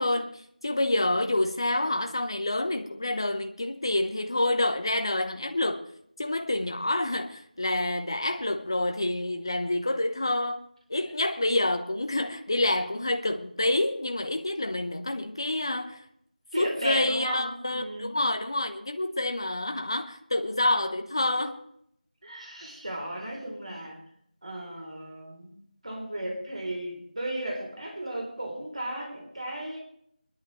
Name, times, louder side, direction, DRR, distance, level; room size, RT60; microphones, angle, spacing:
voice 1, 0.0-5.8 6.2-10.6 10.9-16.0 16.6-21.6, left 2 dB, 30° left, 0.8 m, -28 dB
voice 2, 16.5-18.1 22.2-24.0 24.4-25.6 25.8-29.8, right 1 dB, 45° right, 3.5 m, -35 dB
23.0 x 11.0 x 3.2 m
figure-of-eight pair, 170°, 5 cm